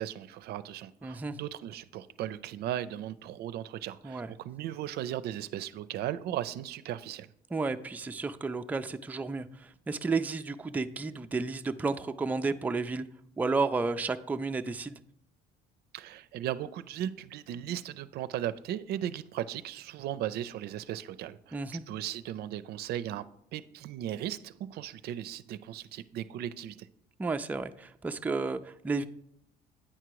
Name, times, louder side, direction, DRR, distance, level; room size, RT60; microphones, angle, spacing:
voice 1, 0.0-7.3 15.9-21.6 21.9-23.3 23.5-26.8, right 11 dB, 70° right, 0.4 m, -37 dB
voice 2, 1.0-1.4 4.0-4.3 7.5-13.1 13.4-15.0 21.5-21.8 27.2-29.1, right 3 dB, 10° right, 0.3 m, -32 dB
8.8 x 4.9 x 4.7 m
cardioid pair, 110°, 17 cm